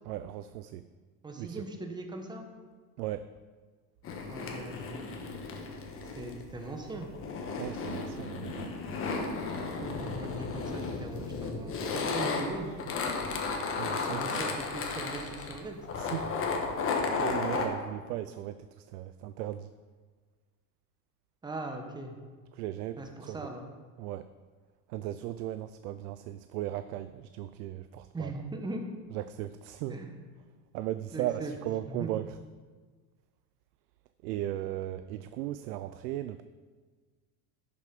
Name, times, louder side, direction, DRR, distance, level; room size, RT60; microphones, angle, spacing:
voice 1, 0.1-0.8 1.4-1.6 3.0-3.3 7.6-8.7 13.8-14.5 15.9-16.3 16.7-19.7 22.5-23.4 24.0-24.3 24.9-28.3 29.1-30.0 30.7-32.4 34.2-36.4, right 13 dB, 80° right, 12 dB, 0.6 m, -37 dB
voice 2, 1.2-2.5 4.3-4.9 6.2-7.1 9.8-12.8 14.1-15.8 21.4-22.2 23.0-23.6 28.1-28.8 29.9-30.2 31.1-31.5 31.9-32.1, right 2 dB, 10° right, 4 dB, 1.0 m, -39 dB
sound 1, 4.0-17.7, left 4 dB, 30° left, 1.3 m, -34 dB
10.5 x 6.8 x 5.2 m, 1.5 s
supercardioid pair, 135°, 46 cm